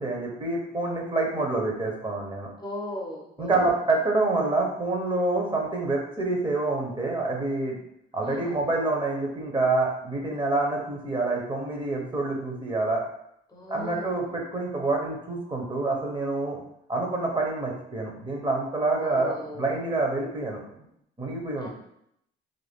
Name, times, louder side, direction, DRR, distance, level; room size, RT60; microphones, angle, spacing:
voice 1, 0.0-2.5 3.4-7.8 8.1-13.0 13.7-16.6 16.9-20.6 21.2-21.7, right 2 dB, 25° right, -1 dB, 0.7 m, -27 dB
voice 2, 2.6-3.7 8.2-8.6 13.5-14.2 19.0-19.8 21.6-21.7, left 1 dB, 20° left, -1 dB, 0.6 m, -38 dB
2.5 x 2.2 x 3.4 m, 0.75 s
cardioid pair, 90°, 20 cm